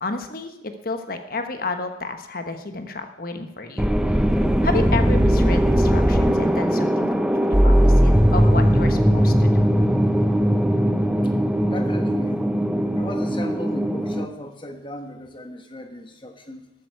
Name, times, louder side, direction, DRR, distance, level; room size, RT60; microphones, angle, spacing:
voice 1, 0.0-9.7, left 3 dB, 50° left, 7 dB, 1.2 m, -31 dB
sound 1, 3.8-14.2, equal, 5° right, 0.5 m, -19 dB
voice 2, 11.7-12.4 13.0-16.7, left 1 dB, 25° left, 6 dB, 1.3 m, -36 dB
13.0 x 13.0 x 4.7 m, 0.89 s
head